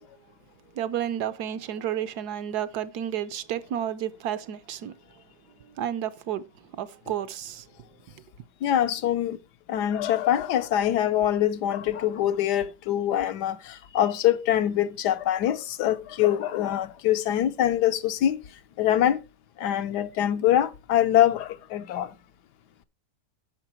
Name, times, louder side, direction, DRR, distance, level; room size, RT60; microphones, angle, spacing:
voice 1, 0.7-5.0 5.6-7.7, right 10 dB, 70° right, 1.2 m, -31 dB
voice 2, 8.6-9.4 9.7-18.4 18.8-19.2 19.6-22.1, left 11 dB, 75° left, 1.3 m, -24 dB
9.9 x 6.2 x 4.3 m
omnidirectional pair, 1.9 m